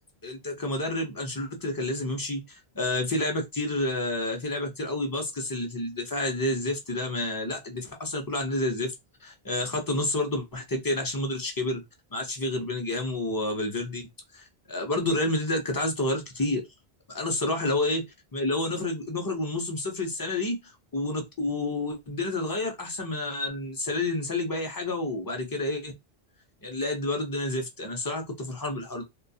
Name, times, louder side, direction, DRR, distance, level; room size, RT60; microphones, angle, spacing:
voice 1, 0.2-8.9 9.2-11.8 12.1-14.0 14.3-16.6 17.1-18.0 18.3-25.9 26.6-29.0, left 2 dB, 25° left, 0.5 m, -29 dB
2.3 x 2.2 x 2.6 m
omnidirectional pair, 1.1 m